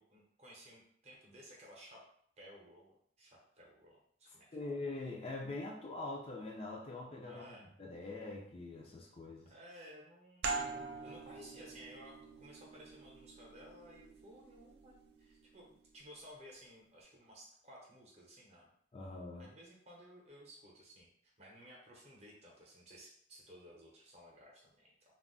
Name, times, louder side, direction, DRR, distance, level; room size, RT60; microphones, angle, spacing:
voice 1, 0.0-2.0 2.4-4.5 7.3-7.7 9.4-10.4 11.0-15.7 15.9-18.7 19.4-25.1, equal, 35° right, -3 dB, 0.8 m, -56 dB
voice 2, 4.5-9.5 18.9-19.5, left 2 dB, 30° left, -1 dB, 0.4 m, -43 dB
sound 1, 10.4-15.7, right 4 dB, 65° right, 0.4 m, -44 dB
2.3 x 2.0 x 3.7 m, 0.67 s
head